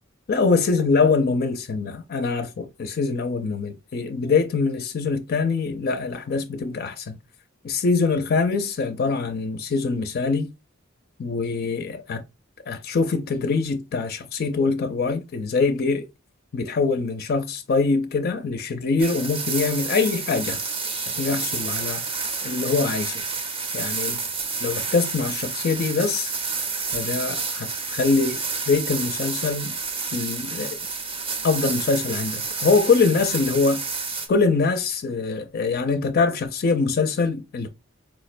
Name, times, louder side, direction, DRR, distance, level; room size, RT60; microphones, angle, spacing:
voice 1, 0.3-7.2 7.6-10.5 11.2-12.2 12.7-16.1 16.5-20.6 21.1-22.0 22.4-23.1 23.7-24.2 24.6-26.4 26.9-28.4 28.7-29.8 30.1-30.8 31.4-33.8 34.3-37.7, left 4 dB, 50° left, 0.4 m, -23 dB
sound 1, 19.0-34.3, right 4 dB, 30° right, 0.5 m, -29 dB
4.5 x 2.1 x 2.4 m
head